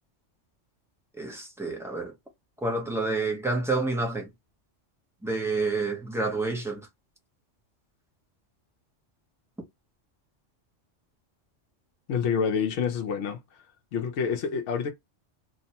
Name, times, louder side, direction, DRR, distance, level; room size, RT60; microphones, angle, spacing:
voice 1, 1.2-2.1 2.6-4.3 5.2-6.9, right 3 dB, 5° right, 0.5 m, -28 dB
voice 2, 12.1-13.4 13.9-14.9, left 6 dB, 75° left, 0.9 m, -27 dB
2.9 x 2.1 x 2.8 m
omnidirectional pair, 1.2 m